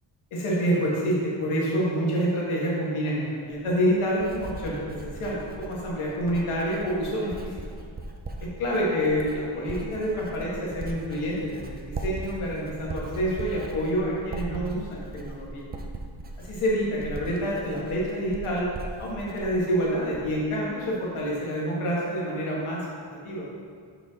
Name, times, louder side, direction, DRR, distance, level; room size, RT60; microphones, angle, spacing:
voice 1, 0.3-7.5 8.4-15.6 16.4-18.7 19.0-22.9 23.2-23.4, equal, 85° left, -5 dB, 1.7 m, -27 dB
Writing, 3.5-20.5 20.8-21.2, right 2 dB, 25° right, 0.3 m, -39 dB
6.2 x 5.9 x 3.7 m, 2.1 s
wide cardioid pair, 175°, 49 cm